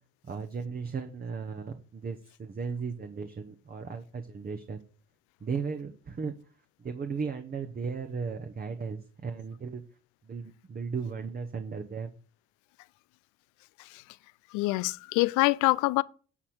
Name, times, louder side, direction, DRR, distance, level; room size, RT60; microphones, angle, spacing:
voice 1, 0.2-4.8 5.4-6.3 6.8-9.8 10.2-12.1, right 5 dB, 30° right, 1.1 m, -36 dB
voice 2, 14.5-16.0, left 22 dB, 75° left, 0.5 m, -25 dB
9.8 x 4.3 x 6.4 m
supercardioid pair, 75°, 31 cm